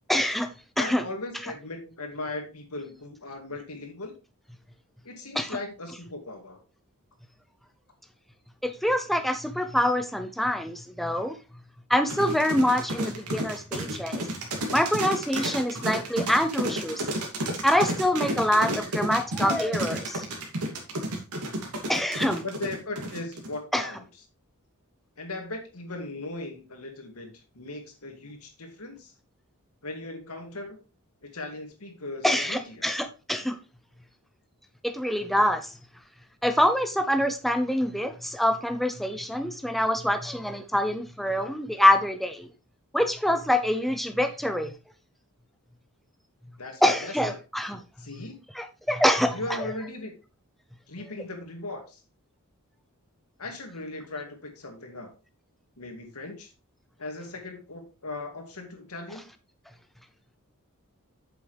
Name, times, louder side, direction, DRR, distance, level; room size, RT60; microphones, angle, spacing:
voice 1, 0.1-0.5 0.8-1.0 5.4-5.5 8.6-11.4 11.9-14.2 14.7-17.0 17.6-20.2 21.9-22.4 23.7-23.9 32.2-33.6 34.8-35.7 36.4-42.5 42.9-44.7 46.8-47.8 48.6-49.4, left 1 dB, ahead, 0.5 m, -25 dB
voice 2, 0.8-4.2 5.0-6.6 22.4-24.1 25.2-29.1 29.8-30.8 31.2-32.9 46.6-47.2 48.0-48.4 49.3-50.1 50.9-52.0 53.4-55.1 55.8-56.5 57.0-59.2, left 2 dB, 80° left, 2.3 m, -38 dB
sound 1, 12.1-23.6, right 1 dB, 85° right, 2.6 m, -31 dB
8.7 x 7.0 x 3.3 m
head